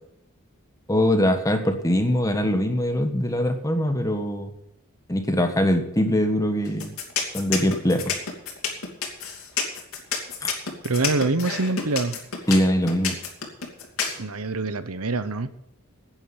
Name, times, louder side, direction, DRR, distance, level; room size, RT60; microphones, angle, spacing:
voice 1, 0.9-4.5 5.1-6.9 7.3-8.1 10.4-10.5 12.5-13.1, equal, 15° left, 6 dB, 1.5 m, -22 dB
sound 1, 6.7-14.2, left 6 dB, 70° left, 3.0 m, -28 dB
voice 2, 10.8-12.2 14.2-15.5, right 3 dB, 80° right, 12 dB, 1.0 m, -25 dB
10.5 x 9.4 x 9.5 m, 0.81 s
head